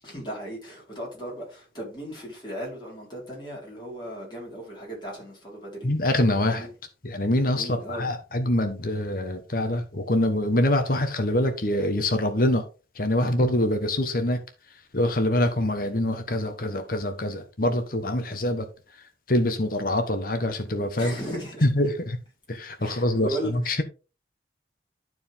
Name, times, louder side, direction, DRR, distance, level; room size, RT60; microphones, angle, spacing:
voice 1, 0.0-5.9 6.4-6.7 7.5-8.1 20.9-21.7 22.8-23.8, right 1 dB, 25° left, 4.4 m, -36 dB
voice 2, 5.8-6.7 7.0-12.6 12.9-14.4 14.9-18.7 18.9-21.2 21.6-22.2 22.5-23.8, left 1 dB, 55° left, 1.2 m, -25 dB
12.0 x 4.6 x 3.6 m
head